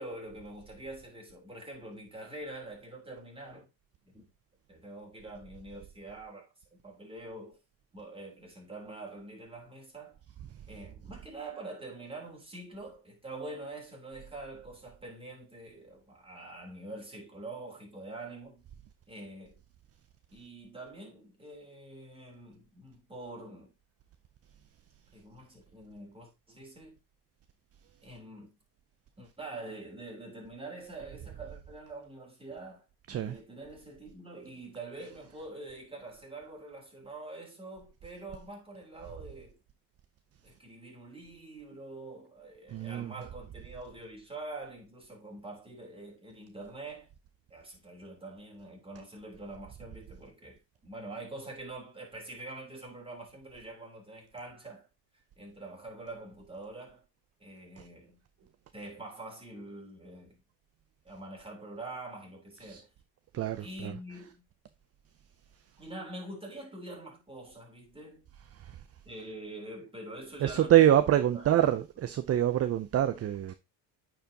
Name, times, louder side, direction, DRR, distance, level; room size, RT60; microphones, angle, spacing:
voice 1, 0.0-3.7 4.0-4.3 4.7-7.6 7.9-10.2 10.7-18.7 19.1-19.6 20.3-23.7 25.1-27.0 28.0-28.6 29.2-39.6 40.4-47.1 47.5-54.9 55.4-57.1 57.4-58.2 58.7-60.4 61.0-62.9 63.6-64.4 65.8-68.2 69.0-71.5, right 2 dB, 10° right, 3.3 m, -45 dB
voice 2, 42.7-43.1 57.8-57.9 62.6-62.8 63.3-63.9 68.6-68.8 70.4-73.5, right 11 dB, 35° right, 0.5 m, -26 dB
9.1 x 4.8 x 2.8 m
cardioid pair, 105°, 46 cm